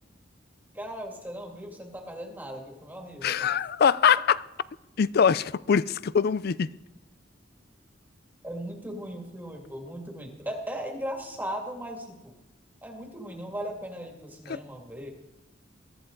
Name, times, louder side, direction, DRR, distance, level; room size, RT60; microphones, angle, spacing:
voice 1, 0.7-3.5 8.4-12.3 12.8-15.1, equal, 10° right, 2.1 m, -37 dB
voice 2, 3.2-4.4 5.0-6.7 14.5-14.6, left 7 dB, 55° left, 0.4 m, -23 dB
22.5 x 14.0 x 3.8 m
head